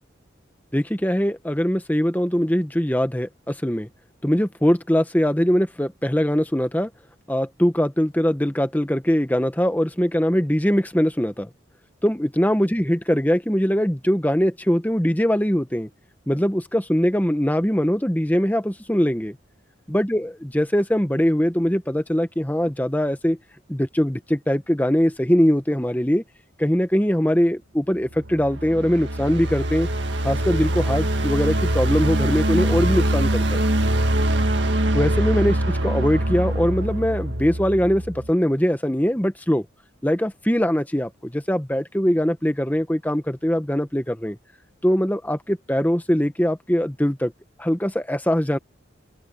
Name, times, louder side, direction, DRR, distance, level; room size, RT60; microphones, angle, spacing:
voice 1, 0.7-3.9 4.2-6.9 7.3-11.5 12.0-15.9 16.3-19.3 19.9-23.4 23.7-26.2 26.6-29.9 30.2-33.6 34.9-39.7 40.0-44.4 44.8-47.3 47.6-48.6, equal, 10° left, 1.1 m, -22 dB
sound 1, 28.1-38.3, right 1 dB, 60° right, 1.9 m, -23 dB
open air
head